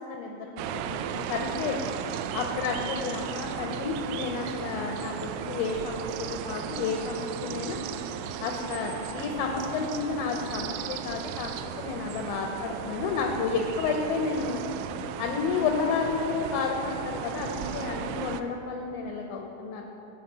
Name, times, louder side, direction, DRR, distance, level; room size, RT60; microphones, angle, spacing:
voice 1, 0.1-1.8 2.3-7.8 8.4-11.5 11.8-14.6 15.2-19.8, left 5 dB, 85° left, 2 dB, 2.6 m, -31 dB
sound 1, 0.6-18.4, right 8 dB, 85° right, 2.7 m, -35 dB
12.0 x 5.6 x 8.0 m, 3.0 s
omnidirectional pair, 5.9 m